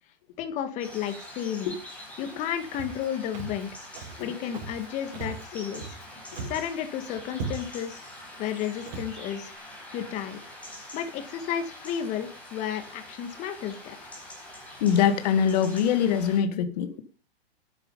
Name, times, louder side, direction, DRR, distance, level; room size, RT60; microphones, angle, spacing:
voice 1, 0.4-1.8 2.2-3.7 4.2-6.0 6.5-8.0 8.4-9.5 9.9-10.4 10.9-14.1, left 9 dB, 25° left, 10 dB, 1.9 m, -32 dB
sound 1, 0.8-16.4, left 1 dB, 5° left, 4.8 m, -45 dB
Walk footsteps, 2.7-3.1 3.3-3.6 3.9-4.2 4.5-4.9 5.1-6.0 6.3-6.7 7.0-7.1 7.3-7.9 8.4-8.5 8.9-9.1, right 4 dB, 45° right, 6.0 m, -37 dB
voice 2, 14.8-17.0, left 8 dB, 40° left, 10 dB, 1.9 m, -23 dB
12.0 x 9.4 x 5.3 m, 0.33 s
hypercardioid pair, 160°, 31 cm